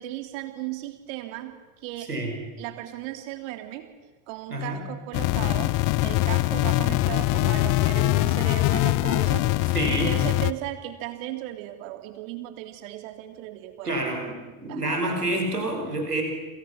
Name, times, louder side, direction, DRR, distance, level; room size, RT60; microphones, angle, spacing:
voice 1, 0.0-2.1 2.6-3.9 4.3-5.8 6.0-14.0 14.7-15.0, right 14 dB, 55° right, 7 dB, 3.3 m, -36 dB
voice 2, 4.5-4.8 9.7-10.1 13.8-14.2 14.6-16.2, right 1 dB, 85° right, 3 dB, 5.7 m, -27 dB
sound 1, 5.1-10.5, left 19 dB, 45° left, 0.9 m, -23 dB
29.5 x 27.5 x 6.0 m, 1.3 s
figure-of-eight pair, 70°, 46 cm